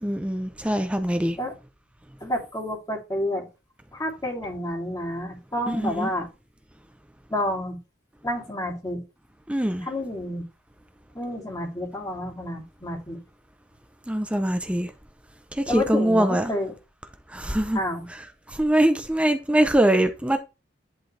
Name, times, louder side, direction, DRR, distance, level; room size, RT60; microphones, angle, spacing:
voice 1, 0.0-1.4 5.7-6.1 9.5-9.9 14.1-14.9 15.5-16.5 17.3-17.8 18.5-20.4, right 1 dB, 5° right, 0.6 m, -23 dB
voice 2, 2.2-3.5 3.9-6.3 7.3-7.8 8.2-9.0 9.8-10.5 11.1-13.2 15.7-16.7 17.7-18.1, left 1 dB, 20° left, 2.5 m, -29 dB
10.5 x 3.9 x 3.3 m
head